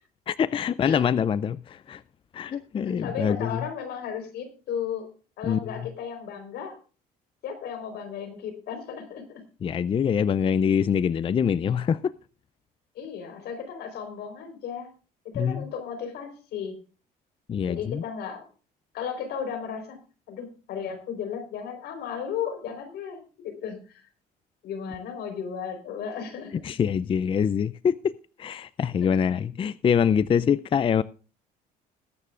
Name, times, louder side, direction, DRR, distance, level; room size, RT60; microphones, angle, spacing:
voice 1, 0.3-2.0 2.3-3.5 5.4-5.6 9.6-12.1 15.3-15.6 17.5-18.0 26.6-28.1 28.4-31.0, left 7 dB, 30° left, 0.5 m, -24 dB
voice 2, 2.8-5.1 5.4-6.8 7.4-9.4 12.9-14.9 15.3-16.8 17.7-18.5 18.9-20.0 20.3-24.0 24.6-26.7 29.0-29.2, left 7 dB, 75° left, 4.3 m, -35 dB
20.5 x 9.9 x 2.5 m
cardioid pair, 110°, 17 cm